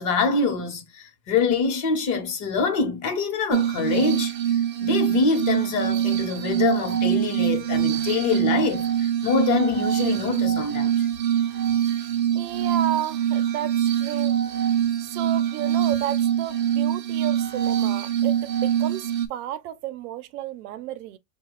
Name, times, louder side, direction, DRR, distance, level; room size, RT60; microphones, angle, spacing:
voice 1, 0.0-11.1, left 4 dB, 40° left, 0.9 m, -25 dB
Glass, 3.5-19.3, right 10 dB, 25° right, 0.5 m, -24 dB
voice 2, 12.3-14.4 15.0-21.2, right 12 dB, 80° right, 0.6 m, -32 dB
5.6 x 2.3 x 3.0 m
supercardioid pair, 165°, 45 cm